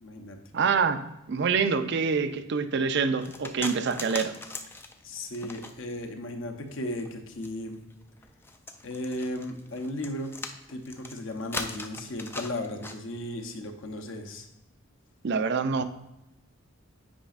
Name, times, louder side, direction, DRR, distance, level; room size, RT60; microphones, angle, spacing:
voice 1, 0.0-0.4 5.0-7.8 8.8-10.3 10.7-14.5, left 1 dB, 60° left, 0.8 m, -35 dB
voice 2, 0.5-4.3 15.2-15.8, right 5 dB, 50° right, 0.4 m, -26 dB
sound 1, 3.2-6.0 6.6-13.0, left 3 dB, 10° left, 0.3 m, -39 dB
8.5 x 5.0 x 2.5 m
head